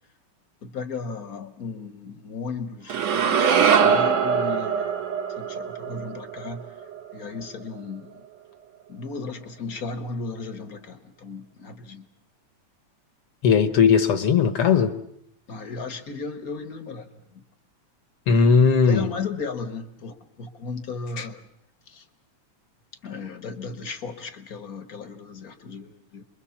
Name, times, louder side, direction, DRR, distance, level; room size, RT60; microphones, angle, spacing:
voice 1, 0.6-4.8 5.4-6.6 7.1-8.1 8.9-12.0 15.5-17.0 18.9-21.4 23.0-26.2, left 4 dB, 45° left, 1.3 m, -35 dB
sound 1, 2.9-7.1, right 7 dB, 65° right, 2.7 m, -22 dB
voice 2, 13.4-15.0 18.3-19.1 21.2-21.3, left 6 dB, 60° left, 1.7 m, -18 dB
28.0 x 22.0 x 7.2 m
omnidirectional pair, 3.4 m